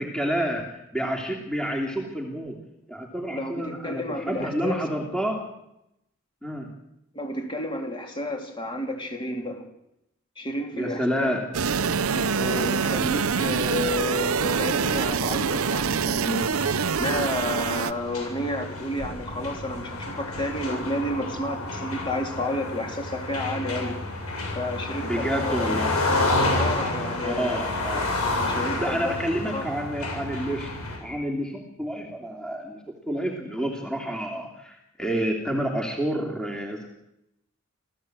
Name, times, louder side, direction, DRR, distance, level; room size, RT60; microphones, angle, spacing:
voice 1, 0.0-2.6 2.9-5.4 6.4-6.7 10.7-11.4 25.0-25.9 27.2-28.1 28.8-30.7 31.0-36.9, equal, 5° left, 1 dB, 3.0 m, -29 dB
voice 2, 3.3-4.8 7.1-9.6 10.4-11.4 12.1-24.0 24.6-25.8 26.5-27.6 28.5-29.1 29.5-29.7, left 1 dB, 20° left, 3 dB, 3.4 m, -31 dB
sound 1, 11.5-17.9, right 5 dB, 75° right, 0.7 m, -25 dB
sound 2, 16.6-31.0, left 2 dB, 85° left, 7.7 m, -30 dB
27.5 x 15.5 x 8.0 m, 0.84 s
head